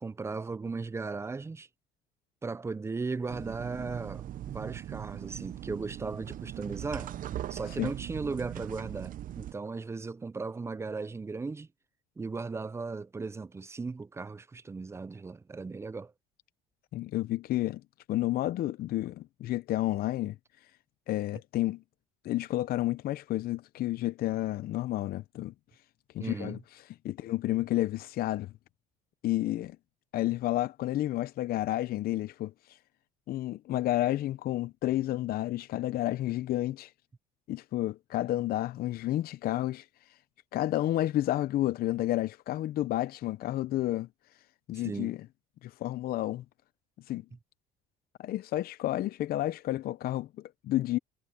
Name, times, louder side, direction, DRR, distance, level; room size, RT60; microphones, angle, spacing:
voice 1, 0.0-1.7 2.4-7.1 7.5-11.7 12.2-16.1 26.2-26.6 44.8-45.1, right 4 dB, 15° right, 0.5 m, -37 dB
sound 1, 3.3-9.5, right 12 dB, 50° right, 0.7 m, -40 dB
voice 2, 16.9-17.8 18.1-20.4 21.1-21.8 22.2-25.5 26.1-26.6 27.0-28.5 29.2-29.8 30.1-32.5 33.3-36.9 37.5-39.9 40.5-44.1 44.7-45.2 45.6-46.4 47.1-47.2 48.2-50.3 50.6-51.0, left 15 dB, 55° left, 0.6 m, -30 dB
cardioid pair, 105°, 18 cm